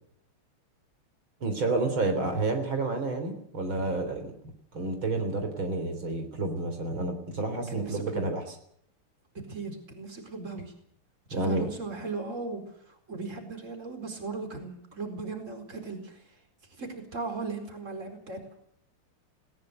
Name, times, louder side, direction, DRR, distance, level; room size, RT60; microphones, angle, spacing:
voice 1, 1.4-4.3 4.7-8.4 11.3-11.7, right 2 dB, 65° right, 6 dB, 4.4 m, -29 dB
voice 2, 7.5-8.3 9.5-10.7 11.3-16.2 16.8-18.4, right 4 dB, 35° right, 6 dB, 4.8 m, -37 dB
20.5 x 19.0 x 7.8 m, 0.67 s
omnidirectional pair, 2.3 m